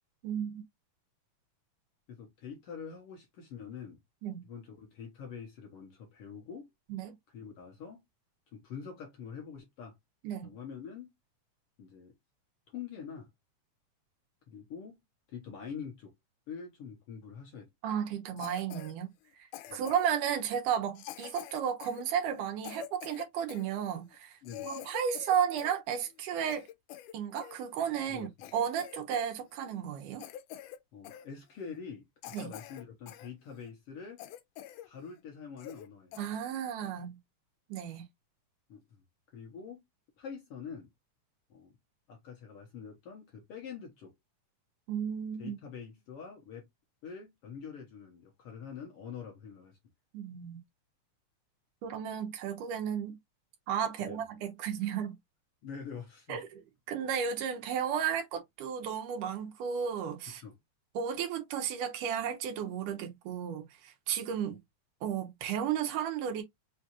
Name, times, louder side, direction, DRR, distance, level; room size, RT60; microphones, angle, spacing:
voice 1, 0.2-0.6 4.2-4.5 6.9-7.1 10.2-10.5 17.8-24.4 24.6-26.7 27.1-30.2 32.3-32.5 36.2-37.2 37.7-38.0 44.9-45.6 50.1-50.6 51.8-53.2 53.7-55.1 56.3-56.6 56.9-60.4 60.9-64.6 65.0-66.4, right 8 dB, 90° right, 2.6 m, -33 dB
voice 2, 2.1-4.0 4.4-6.7 7.3-8.0 8.5-10.0 10.4-11.1 11.8-12.1 12.7-13.3 14.5-15.0 15.3-16.1 16.5-17.7 19.7-19.8 24.4-24.7 28.1-28.3 30.9-34.2 34.8-36.2 38.7-38.8 39.3-39.8 40.2-40.9 41.5-41.8 42.1-44.1 45.4-46.7 47.0-49.8 54.0-54.2 54.8-54.9 55.6-56.4 60.3-60.5 64.5-64.6, left 6 dB, 65° left, 1.5 m, -45 dB
Cough, 18.4-18.9 19.5-20.2 21.0-23.7 24.1-24.2 24.4-25.8 26.1-27.6 28.0-28.1 28.4-29.3 29.6-29.8 30.2-30.8 31.0-31.3 31.8-31.9 32.2-33.3 33.7-33.8 34.2-34.9 35.2-35.3 35.6-35.9 36.1-36.3 36.8-37.0, left 12 dB, 90° left, 2.1 m, -46 dB
5.6 x 2.4 x 2.8 m
omnidirectional pair, 3.6 m